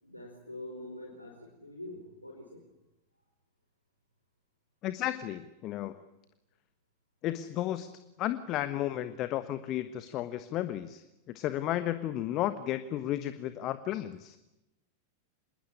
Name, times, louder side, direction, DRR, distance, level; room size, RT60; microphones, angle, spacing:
voice 1, 0.0-2.6, left 1 dB, 85° left, -1 dB, 4.7 m, -45 dB
voice 2, 4.8-6.0 7.2-7.9 8.2-14.4, left 13 dB, 35° left, 12 dB, 1.3 m, -33 dB
27.0 x 21.5 x 10.0 m, 0.94 s
figure-of-eight pair, 90°, 0 cm